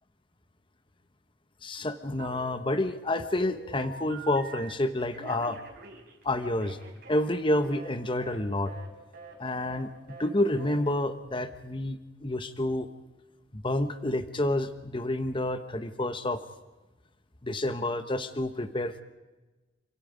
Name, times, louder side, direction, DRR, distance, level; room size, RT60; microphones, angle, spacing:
voice 1, 1.6-5.6 6.2-6.8 7.1-8.7 9.4-9.9 10.2-12.9 13.5-16.4 17.4-19.0, left 1 dB, 30° left, 9 dB, 1.1 m, -29 dB
Telephone, 2.2-2.8 3.1-4.7 5.1-7.9 8.2-8.4 8.7-8.9 9.1-9.4 9.6-9.8 10.1-10.3 10.6-10.8, right 3 dB, 55° right, 4.6 m, -46 dB
29.5 x 26.5 x 5.2 m, 1.1 s
head